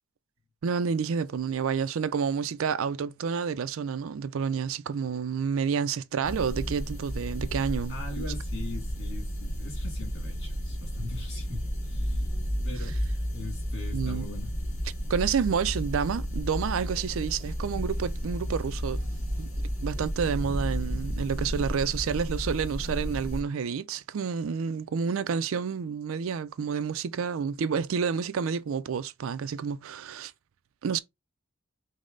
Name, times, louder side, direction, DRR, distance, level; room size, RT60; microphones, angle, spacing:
voice 1, 0.6-8.3 13.9-14.3 15.1-19.0 19.4-19.5 19.8-30.3 30.8-31.0, right 6 dB, 65° right, 0.4 m, -29 dB
sound 1, 6.2-23.4, equal, 35° left, 2.0 m, -32 dB
voice 2, 7.9-12.3 12.6-13.0 13.3-14.5, left 2 dB, 50° left, 2.6 m, -40 dB
5.2 x 2.1 x 3.8 m
head